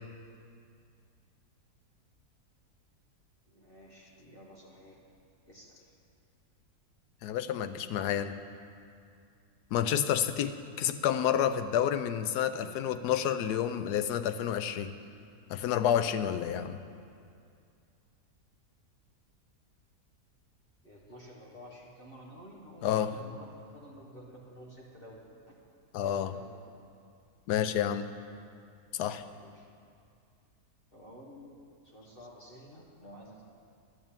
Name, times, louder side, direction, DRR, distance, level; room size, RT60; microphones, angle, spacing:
voice 1, 3.5-5.0 5.5-5.9 12.5-13.0 20.8-25.2 25.5-25.6 26.0-26.5 29.3-29.7 30.9-31.6 31.8-33.5, equal, 35° left, -3 dB, 1.6 m, -51 dB
voice 2, 7.2-8.3 9.7-14.9 15.5-16.8 22.8-23.1 25.9-26.3 27.5-28.1 28.9-29.2, left 10 dB, 85° left, 11 dB, 1.2 m, -29 dB
11.5 x 7.0 x 8.7 m, 2.4 s
omnidirectional pair, 1.7 m